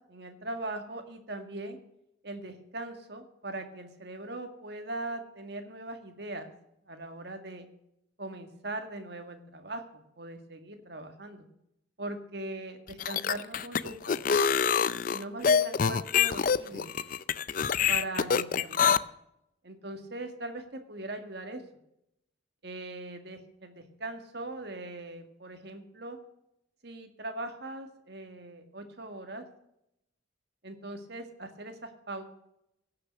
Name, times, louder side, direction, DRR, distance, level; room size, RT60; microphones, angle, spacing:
voice 1, 0.1-1.8 2.2-6.5 6.9-7.7 8.2-9.8 10.2-11.5 12.0-14.1 15.1-16.9 17.9-18.9 19.6-21.6 22.6-26.2 26.8-29.4 30.6-32.2, right 2 dB, 55° right, 6 dB, 1.8 m, -40 dB
sound 1, 12.9-19.0, left 6 dB, 45° left, 0.4 m, -25 dB
16.5 x 6.7 x 6.5 m, 0.81 s
head